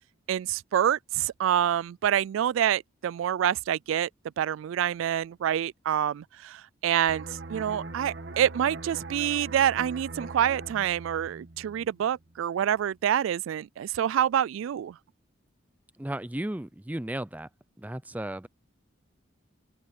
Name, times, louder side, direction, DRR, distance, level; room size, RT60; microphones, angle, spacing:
voice 1, 0.3-4.1 4.4-7.2 7.5-14.9, right 10 dB, 85° right, 0.3 m, -27 dB
sound 1, 7.1-12.5 12.8-13.0, right 3 dB, 60° right, 1.2 m, -42 dB
voice 2, 16.0-17.5 17.8-18.5, right 1 dB, 10° right, 0.4 m, -34 dB
open air
head